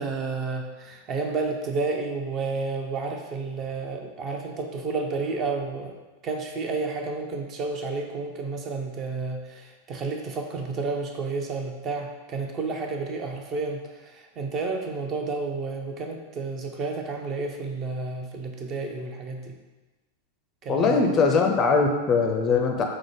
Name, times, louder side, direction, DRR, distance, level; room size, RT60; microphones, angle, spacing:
voice 1, 0.0-5.9 6.2-13.8 14.4-19.5 20.6-21.0, right 3 dB, 30° right, 3 dB, 0.5 m, -31 dB
voice 2, 20.7-22.8, left 4 dB, 30° left, 3 dB, 0.5 m, -21 dB
4.8 x 2.1 x 4.6 m, 1.2 s
figure-of-eight pair, 90°, 0 cm